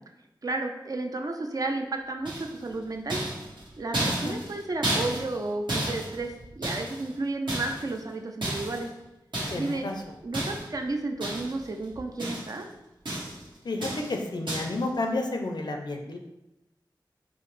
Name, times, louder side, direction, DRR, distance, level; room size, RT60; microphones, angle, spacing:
voice 1, 0.4-3.2 3.8-8.9 9.6-9.9 10.2-12.7, right 2 dB, 50° right, 3 dB, 0.4 m, -32 dB
sound 1, 2.2-2.7 3.1-7.1 7.5-8.0 8.4-8.9 9.3-9.8 10.3-10.8 11.2-11.7 11.9-12.6 13.0-13.5 13.8-14.2 14.5-14.8, right 1 dB, 70° right, 1.2 m, -32 dB
voice 2, 4.0-4.3 9.5-9.9 13.6-16.2, left 2 dB, 60° left, 3 dB, 0.5 m, -31 dB
4.6 x 2.0 x 3.1 m, 0.92 s
wide cardioid pair, 75°, 8 cm